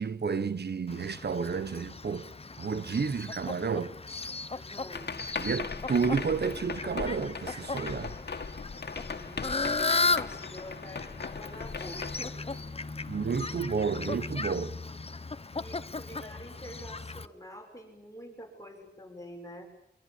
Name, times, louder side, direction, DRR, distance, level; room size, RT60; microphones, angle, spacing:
voice 1, 0.0-2.3 2.6-3.9 5.4-8.1 13.1-14.7, right 5 dB, 75° right, 1.1 m, -31 dB
Fowl, 0.9-17.3, left 3 dB, 35° left, 0.9 m, -36 dB
voice 2, 4.5-5.1 9.0-12.6 12.9-13.2 15.5-19.7, left 1 dB, 20° left, 6.7 m, -47 dB
sound 1, 4.9-13.4, left 4 dB, 80° left, 2.0 m, -39 dB
Wind instrument woodwind instrument, 10.3-15.1, left 4 dB, 55° right, 5.9 m, -59 dB
25.0 x 22.5 x 8.5 m
wide cardioid pair, 95°, 17 cm